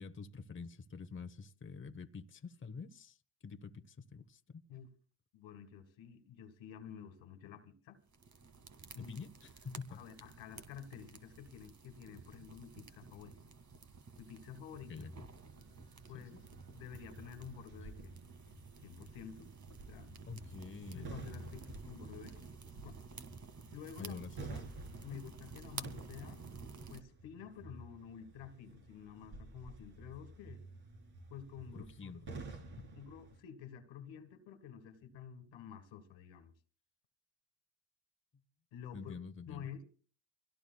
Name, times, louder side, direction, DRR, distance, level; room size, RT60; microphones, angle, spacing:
voice 1, 0.0-3.2 3.4-4.6 9.0-10.0 14.9-15.1 16.1-16.4 20.3-21.1 24.0-24.5 31.7-32.9 38.9-39.7, left 5 dB, 25° left, 1.1 m, -47 dB
voice 2, 5.3-8.0 8.9-9.2 9.9-13.4 14.2-15.0 16.1-16.3 16.7-18.1 18.8-19.5 19.9-20.1 20.9-22.5 22.8-23.0 23.7-24.2 24.5-24.7 25.0-26.5 26.9-30.6 31.3-32.3 32.9-36.5 38.7-39.1 39.5-39.8, left 8 dB, 75° left, 1.9 m, -50 dB
sound 1, 8.1-27.0, right 5 dB, 35° right, 1.9 m, -52 dB
sound 2, 14.9-33.4, right 2 dB, 55° right, 4.2 m, -52 dB
25.0 x 17.5 x 2.3 m
supercardioid pair, 65°, 46 cm